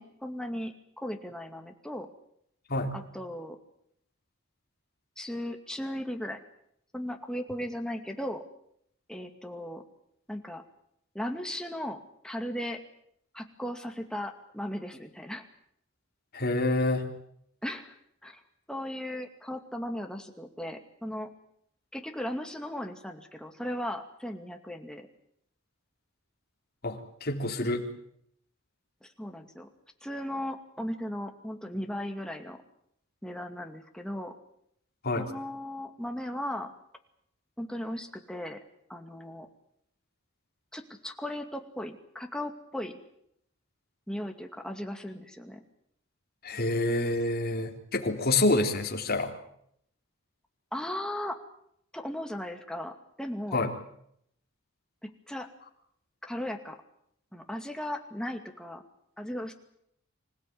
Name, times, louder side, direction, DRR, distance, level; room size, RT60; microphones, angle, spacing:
voice 1, 0.0-2.1 2.9-3.6 5.2-6.4 6.9-8.4 9.1-9.8 10.3-10.6 11.1-12.0 12.2-12.8 13.3-15.4 17.6-18.0 18.2-18.4 18.7-21.3 21.9-25.1 29.0-29.7 30.0-32.6 33.2-34.3 35.2-36.7 37.6-38.6 38.9-39.5 40.7-43.0 44.1-45.6 50.7-51.4 51.9-53.7 55.0-55.5 56.2-56.8 57.3-58.8 59.2-59.5, left 1 dB, 5° left, 4 dB, 2.3 m, -37 dB
voice 2, 16.3-17.1 26.8-27.9 35.0-35.3 46.4-49.3 53.5-53.7, left 2 dB, 50° left, 3 dB, 3.6 m, -27 dB
26.0 x 17.0 x 9.5 m, 0.72 s
head